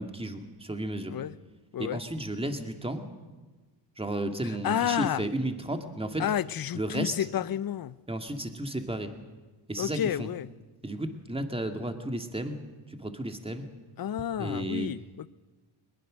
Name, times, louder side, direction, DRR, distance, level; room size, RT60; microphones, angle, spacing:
voice 1, 0.0-1.2 1.8-3.0 4.0-6.2 6.7-7.1 8.1-9.1 9.7-10.3 10.8-12.6 12.9-13.7 14.4-14.9, right 1 dB, 10° right, 2.2 m, -33 dB
voice 2, 4.6-5.2 6.2-8.0 9.8-10.5 14.0-15.3, left 10 dB, 45° left, 0.7 m, -30 dB
21.5 x 20.5 x 6.4 m
cardioid pair, 80°, 49 cm